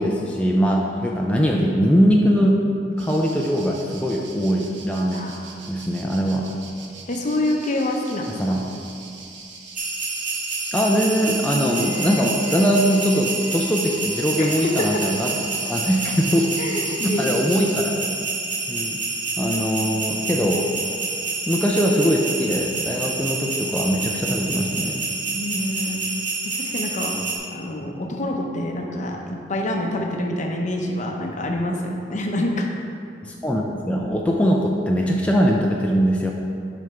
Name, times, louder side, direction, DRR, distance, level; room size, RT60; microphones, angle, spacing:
voice 1, 0.0-2.6 3.0-5.3 5.7-6.5 8.4-8.6 10.7-15.3 15.7-16.6 17.0-18.1 18.7-19.0 19.4-20.7 21.5-25.0 33.2-36.3, equal, 5° left, -2 dB, 0.4 m, -21 dB
sound 1, 3.0-17.7, right 4 dB, 85° right, 0.8 m, -42 dB
voice 2, 7.1-8.4 14.4-14.9 16.6-17.4 25.3-26.0 26.4-27.1 27.5-32.7, left 1 dB, 45° left, 1 dB, 0.7 m, -26 dB
sound 2, 9.8-27.4, right 3 dB, 45° right, 0.9 m, -28 dB
Bowed string instrument, 11.3-16.4, right 1 dB, 70° right, 1.6 m, -40 dB
6.6 x 5.1 x 4.4 m, 2.4 s
head